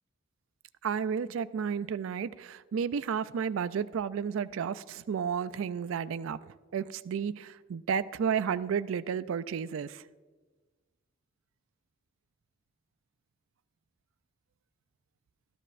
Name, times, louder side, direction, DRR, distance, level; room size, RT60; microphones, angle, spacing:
voice 1, 0.8-10.0, right 7 dB, 70° right, 0.3 m, -32 dB
13.5 x 13.0 x 2.5 m
head